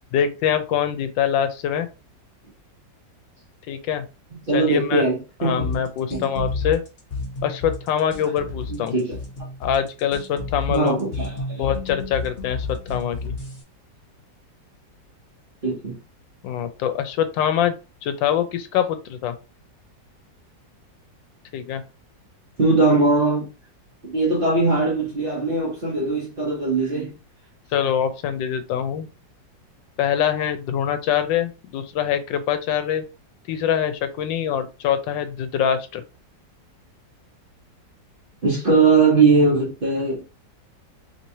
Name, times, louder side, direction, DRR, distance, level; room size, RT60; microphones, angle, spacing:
voice 1, 0.1-1.9 3.7-4.0 4.5-5.0 5.4-6.8 7.4-8.9 9.6-11.0 11.6-13.4 16.4-17.7 18.0-19.4 21.5-21.8 27.7-29.1 30.0-33.0 33.5-36.0, left 9 dB, 90° left, 1.3 m, -24 dB
voice 2, 4.5-5.7 6.1-6.3 8.7-9.2 10.7-11.7 15.6-16.0 22.6-23.5 24.0-27.1 38.4-40.2, right 3 dB, 35° right, 0.9 m, -20 dB
sound 1, 5.6-13.6, left 3 dB, 35° left, 0.8 m, -31 dB
3.4 x 3.0 x 2.7 m
omnidirectional pair, 2.0 m